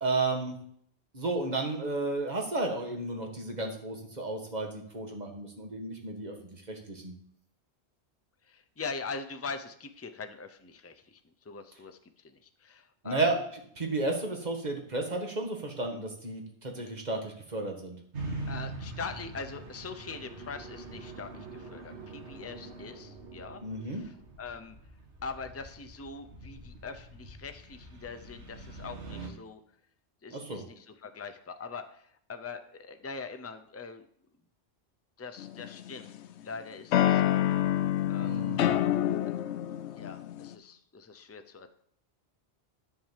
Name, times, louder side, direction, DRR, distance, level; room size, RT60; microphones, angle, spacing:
voice 1, 0.0-0.6 1.1-7.1 13.0-13.4 13.8-18.0 23.6-24.0 30.3-30.6 38.2-38.6, right 2 dB, 40° right, 2 dB, 1.8 m, -33 dB
voice 2, 8.4-13.3 18.5-24.8 25.2-29.6 30.2-34.1 35.2-37.4 38.0-38.9 39.3-39.4 39.9-41.7, left 4 dB, 15° left, 8 dB, 0.6 m, -43 dB
sound 1, 18.1-29.3, right 2 dB, 85° right, 2.1 m, -44 dB
sound 2, 19.5-24.4, right 4 dB, 60° right, 2.1 m, -48 dB
sound 3, 35.4-36.3 36.9-40.5, left 12 dB, 85° left, 0.9 m, -27 dB
10.5 x 4.7 x 7.5 m, 0.66 s
omnidirectional pair, 1.1 m